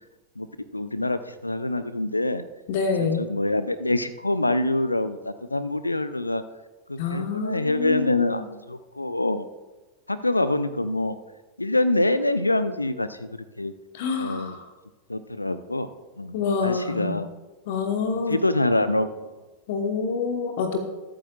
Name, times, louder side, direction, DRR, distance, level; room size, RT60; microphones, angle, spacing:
voice 1, 0.7-2.4 3.2-6.4 6.9-9.5 10.1-11.2 11.6-13.7 14.2-14.6 15.1-15.9 16.2-17.3 18.1-19.3, left 2 dB, 85° left, 13 dB, 0.5 m, -25 dB
voice 2, 2.7-3.3 7.0-8.5 13.9-14.6 16.3-17.2 17.7-18.4 19.7-20.8, left 5 dB, 50° left, 5 dB, 1.2 m, -27 dB
21.5 x 8.8 x 2.4 m, 1.2 s
figure-of-eight pair, 90°, 0 cm